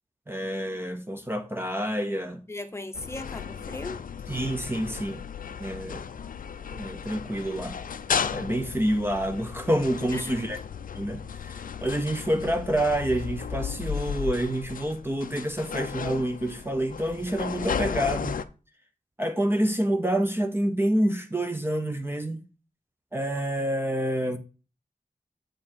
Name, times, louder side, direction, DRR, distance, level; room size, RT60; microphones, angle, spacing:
voice 1, 0.3-2.5 4.3-5.2 5.6-6.0 6.7-7.8 8.3-10.6 11.0-18.4 19.2-22.4 23.1-24.4, right 1 dB, 15° right, 0.7 m, -28 dB
voice 2, 2.5-4.0 10.1-10.5 24.2-24.4, left 2 dB, 15° left, 0.8 m, -38 dB
sound 1, 2.9-18.4, left 7 dB, 70° left, 0.5 m, -34 dB
7.6 x 5.0 x 4.2 m
wide cardioid pair, 120°, 15 cm